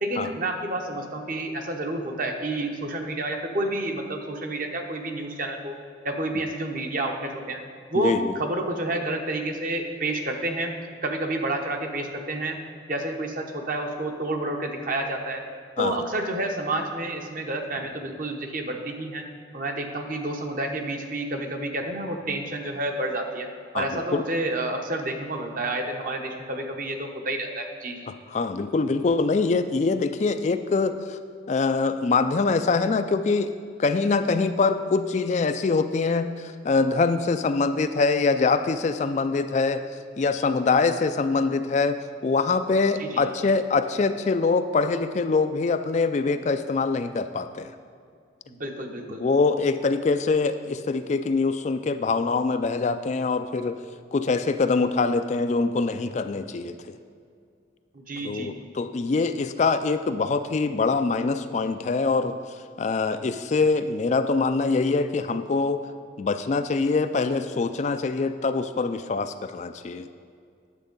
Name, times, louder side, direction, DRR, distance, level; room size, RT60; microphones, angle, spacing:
voice 1, 0.0-5.8 6.0-7.6 7.9-10.7 11.0-12.6 12.9-15.4 15.8-19.2 19.5-23.5 23.7-28.0 43.0-43.3 48.5-49.2 57.9-58.6, right 2 dB, 45° right, 3 dB, 1.0 m, -29 dB
voice 2, 7.9-8.3 15.8-16.0 23.7-24.2 28.3-31.2 31.5-33.5 33.8-39.8 40.2-47.7 49.1-53.8 54.1-56.8 58.2-62.4 62.8-65.8 66.2-70.1, left 4 dB, 35° left, 9 dB, 0.3 m, -24 dB
10.0 x 7.4 x 5.3 m, 2.3 s
head